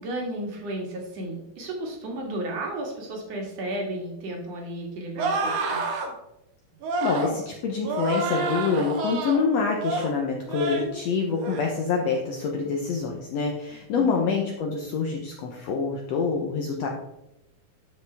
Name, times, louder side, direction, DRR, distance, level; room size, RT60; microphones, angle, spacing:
voice 1, 0.0-5.8 13.9-14.4, right 1 dB, 50° right, -1 dB, 2.7 m, -33 dB
sound 1, 5.2-6.1 6.8-7.4 7.8-9.4 9.8-10.1 10.5-10.9 11.3-11.6, right 3 dB, 65° right, 2.4 m, -28 dB
voice 2, 7.0-16.9, left 5 dB, 75° left, 1 dB, 1.5 m, -26 dB
12.5 x 5.2 x 3.4 m, 0.86 s
omnidirectional pair, 4.0 m